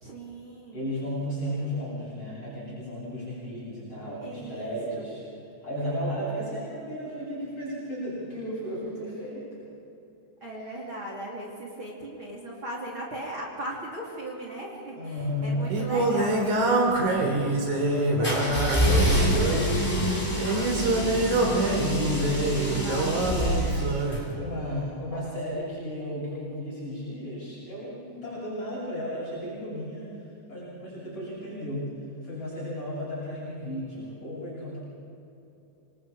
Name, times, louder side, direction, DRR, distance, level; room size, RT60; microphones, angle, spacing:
voice 1, 0.0-0.9 4.2-5.0 10.4-16.9 20.4-21.5 21.8-22.2 22.5-24.7 25.1-25.3, right 1 dB, 40° right, -2 dB, 3.6 m, -39 dB
voice 2, 0.7-5.2 5.6-9.7 10.4-10.8 15.0-15.6 15.9-16.0 17.8-19.8 21.8-22.4 24.4-30.1 30.5-31.9 32.2-34.8, equal, 40° left, -9 dB, 8.7 m, -34 dB
Singing, 15.2-24.2, right 2 dB, 65° right, 4.6 m, -26 dB
sound 1, 18.2-24.2, equal, 10° left, 5.9 m, -26 dB
27.0 x 26.5 x 5.0 m, 3.0 s
omnidirectional pair, 3.7 m